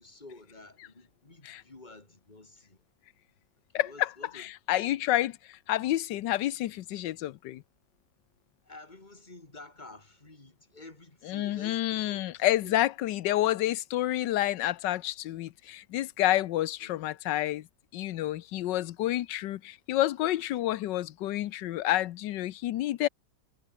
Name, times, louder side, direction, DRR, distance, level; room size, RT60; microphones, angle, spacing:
voice 1, 0.0-2.8 3.7-5.0 8.6-12.2 12.6-12.8 16.5-16.9, left 2 dB, 25° left, 3.1 m, -50 dB
voice 2, 3.7-4.1 4.3-7.6 11.3-17.7 17.9-23.1, left 14 dB, 80° left, 1.4 m, -29 dB
omnidirectional pair, 1.9 m